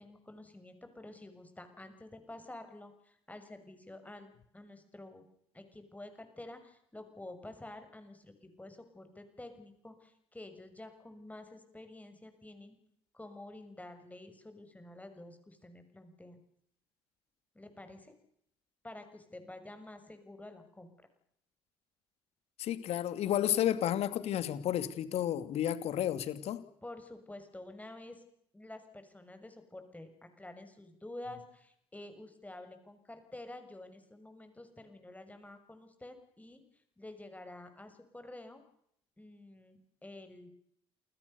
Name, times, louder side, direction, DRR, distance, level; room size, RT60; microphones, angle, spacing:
voice 1, 0.0-5.2 5.5-12.8 13.1-16.4 17.5-18.1 18.8-20.9 26.8-28.2 28.5-36.6 37.0-38.6 39.2-40.5, left 1 dB, 10° left, 8 dB, 6.6 m, -49 dB
voice 2, 22.6-26.6, left 11 dB, 55° left, 13 dB, 2.5 m, -32 dB
29.0 x 21.5 x 6.9 m, 0.71 s
figure-of-eight pair, 50°, 13 cm